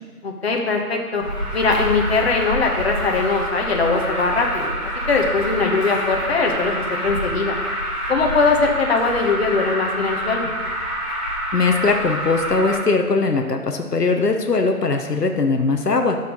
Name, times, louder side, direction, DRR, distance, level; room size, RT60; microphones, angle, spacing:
voice 1, 0.2-1.2 1.5-4.7 5.1-7.6 8.1-10.5, left 4 dB, 40° left, 1 dB, 1.3 m, -21 dB
Alarm, 1.2-12.8, equal, 10° right, 1.2 m, -27 dB
voice 2, 11.5-16.2, left 3 dB, 85° left, 4 dB, 1.0 m, -20 dB
10.5 x 6.8 x 4.0 m, 1.5 s
figure-of-eight pair, 150°, 46 cm